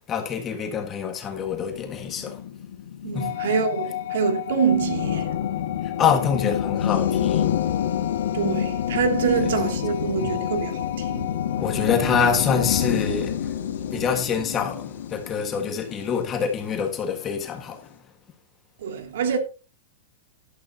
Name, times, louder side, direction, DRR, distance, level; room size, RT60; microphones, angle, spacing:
voice 1, 0.1-2.4 3.1-3.3 5.8-7.5 10.2-10.3 11.6-13.6 13.9-17.9, left 6 dB, 15° left, 1.6 m, -26 dB
sound 1, 1.4-16.9, left 9 dB, 85° left, 1.7 m, -28 dB
voice 2, 3.0-5.4 8.3-11.3 18.8-19.4, right 6 dB, 65° right, 2.6 m, -25 dB
sound 2, 3.2-12.9, left 16 dB, 50° left, 0.7 m, -34 dB
14.0 x 12.0 x 2.8 m
supercardioid pair, 175°, 0 cm